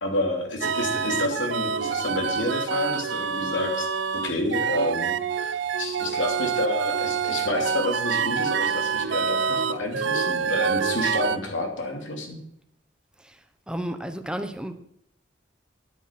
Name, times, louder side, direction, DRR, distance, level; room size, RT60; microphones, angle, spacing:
voice 1, 0.0-3.9 4.2-12.4, left 1 dB, 85° left, 2 dB, 2.9 m, -29 dB
sound 1, 0.6-11.4, right 6 dB, 70° right, 0.6 m, -27 dB
voice 2, 13.2-14.7, right 1 dB, 5° right, 7 dB, 1.0 m, -33 dB
10.0 x 9.2 x 6.0 m, 0.74 s
head